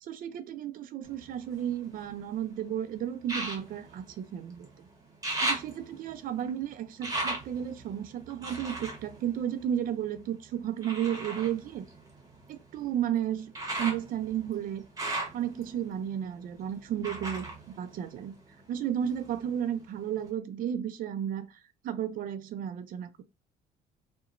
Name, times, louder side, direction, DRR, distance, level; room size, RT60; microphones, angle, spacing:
voice 1, 0.0-4.9 5.4-11.9 12.5-13.5 13.8-14.9 15.3-17.5 17.8-18.3 18.7-23.2, right 10 dB, 55° right, 0.4 m, -33 dB
sound 1, 1.0-2.4 3.2-4.7 5.0-10.2 10.8-18.6 19.0-19.8 20.3-20.4, right 2 dB, 20° right, 1.0 m, -38 dB
2.8 x 2.2 x 2.5 m
cardioid pair, 110°, 17 cm